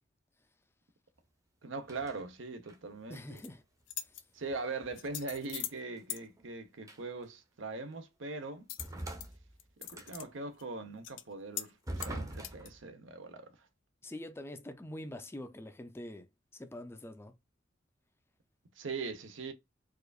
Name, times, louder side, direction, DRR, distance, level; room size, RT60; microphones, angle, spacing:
voice 1, 1.6-3.4 4.3-8.7 9.9-13.5 18.8-19.5, right 3 dB, 80° right, 0.8 m, -41 dB
sound 1, 1.8-2.2 2.6-3.0 4.5-6.5 6.8-7.2 7.9-8.0 8.8-10.3 11.9-12.8, right 1 dB, 15° right, 0.7 m, -44 dB
sound 2, 3.1-3.5 3.9-4.2 5.0-5.8 6.1-6.2 8.7-9.3 9.6-10.3 10.6-10.7 11.0-11.2 11.6-11.7 12.0-12.7, left 12 dB, 75° left, 0.5 m, -41 dB
voice 2, 3.1-3.6 14.0-16.3 16.5-17.3, left 1 dB, 15° left, 0.4 m, -44 dB
4.6 x 2.5 x 2.3 m
head